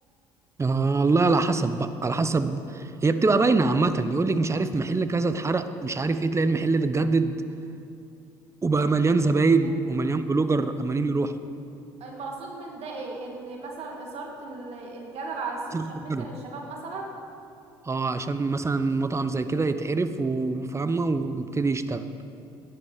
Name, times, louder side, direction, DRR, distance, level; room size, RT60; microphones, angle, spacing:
voice 1, 0.6-7.3 8.6-11.3 15.7-16.3 17.9-22.0, right 3 dB, 25° right, 11 dB, 0.9 m, -24 dB
voice 2, 12.0-17.1, right 3 dB, 55° right, 0 dB, 2.3 m, -36 dB
19.0 x 10.5 x 4.1 m, 2.6 s
hypercardioid pair, 65°, 12 cm